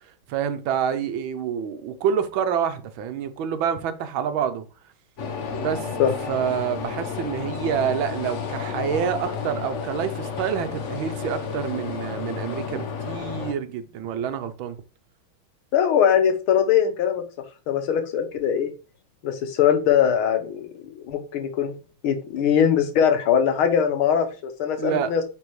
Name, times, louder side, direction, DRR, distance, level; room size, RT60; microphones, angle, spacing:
voice 1, 0.3-4.6 5.6-5.9 6.3-14.8 24.8-25.1, right 8 dB, 75° right, 1.5 m, -27 dB
sound 1, 5.2-13.5, left 6 dB, 55° left, 0.9 m, -31 dB
voice 2, 15.7-17.2 17.7-18.7 19.2-21.7 22.0-24.3 24.6-25.2, left 8 dB, 85° left, 1.9 m, -21 dB
8.9 x 4.1 x 3.1 m
omnidirectional pair, 2.2 m